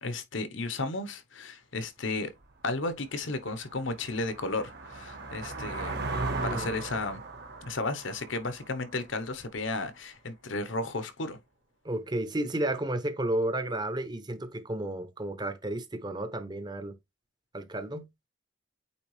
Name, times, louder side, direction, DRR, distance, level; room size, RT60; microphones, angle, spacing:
voice 1, 0.0-2.3 2.6-6.0 6.4-7.2 7.6-11.4, left 2 dB, 70° left, 1.0 m, -33 dB
sound 1, 2.4-2.5 3.0-9.6, right 3 dB, 55° right, 1.2 m, -38 dB
voice 2, 6.1-6.8 11.8-16.9 17.5-18.0, right 1 dB, 20° right, 0.7 m, -32 dB
8.5 x 3.5 x 3.2 m
head